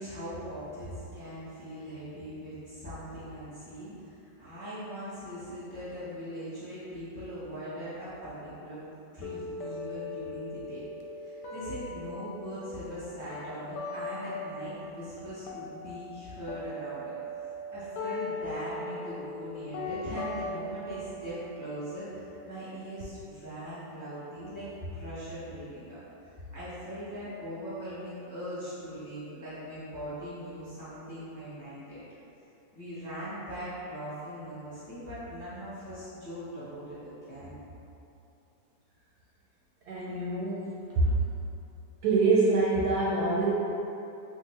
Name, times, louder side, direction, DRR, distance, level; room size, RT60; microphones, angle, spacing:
voice 1, 0.0-8.8 9.1-10.8 11.2-32.0 32.7-37.5, equal, 15° left, -13 dB, 0.9 m, -40 dB
sound 1, 9.2-15.2 15.4-23.2, left 2 dB, 75° left, 1.1 m, -40 dB
voice 2, 39.9-41.2 42.0-43.4, right 3 dB, 70° right, -7 dB, 1.0 m, -25 dB
3.6 x 2.5 x 3.2 m, 2.9 s
omnidirectional pair, 2.0 m